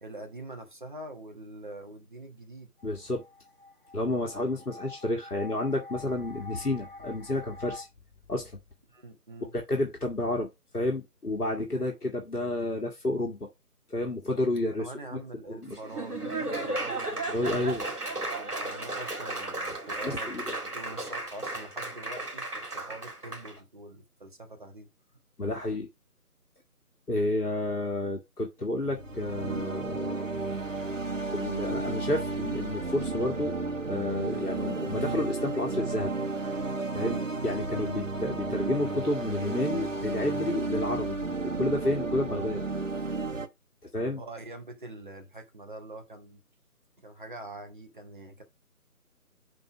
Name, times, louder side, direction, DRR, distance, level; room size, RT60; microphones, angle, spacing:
voice 1, 0.0-2.7 8.9-9.5 11.7-11.9 14.8-17.8 18.1-24.9 34.2-34.5 37.0-37.3 44.2-46.4 47.0-48.4, right 2 dB, 30° right, 1.4 m, -44 dB
voice 2, 2.8-3.2 3.9-7.9 8.3-8.5 9.5-10.5 10.7-13.5 13.9-15.2 15.5-15.8 17.3-17.8 20.0-20.4 25.4-25.9 27.1-30.3 31.3-33.5 33.9-36.1 36.9-37.2 37.4-41.2 41.4-42.6 43.9-44.2, left 2 dB, 75° left, 1.8 m, -30 dB
sound 1, 2.8-7.8, left 2 dB, 35° left, 1.6 m, -46 dB
Laughter / Applause, 15.7-23.5, right 2 dB, 75° right, 2.3 m, -34 dB
sound 2, 28.9-43.5, right 3 dB, 55° right, 1.3 m, -33 dB
5.4 x 5.3 x 5.7 m
figure-of-eight pair, 160°, 46 cm